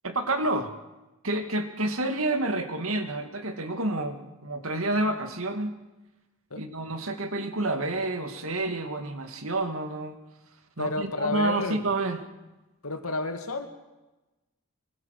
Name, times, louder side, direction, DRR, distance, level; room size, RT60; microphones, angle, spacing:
voice 1, 0.0-0.7 1.2-5.7 6.6-10.2 10.8-12.2, right 2 dB, 70° right, 6 dB, 2.3 m, -29 dB
voice 2, 10.8-11.9 12.8-13.7, left 2 dB, 80° left, 6 dB, 2.5 m, -30 dB
24.5 x 21.5 x 6.7 m, 1.1 s
head